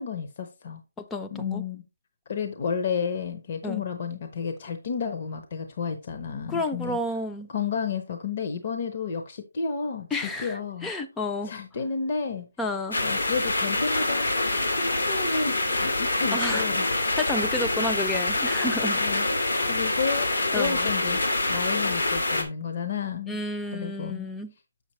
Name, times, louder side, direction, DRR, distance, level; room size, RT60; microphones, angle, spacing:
voice 1, 0.0-0.8 1.3-1.8 2.3-7.0 7.5-10.9 11.4-12.5 13.0-16.9 18.6-21.2 21.5-23.4 23.7-24.3, left 5 dB, 35° left, 0.8 m, -31 dB
voice 2, 1.0-1.6 3.6-3.8 6.5-7.5 10.1-11.5 12.6-13.0 16.3-16.7 17.2-19.0 20.5-20.9 23.3-24.5, left 2 dB, 5° left, 0.5 m, -30 dB
sound 1, 12.9-22.4, left 2 dB, 80° left, 2.2 m, -26 dB
7.1 x 6.6 x 3.1 m
hypercardioid pair, 170°, 0 cm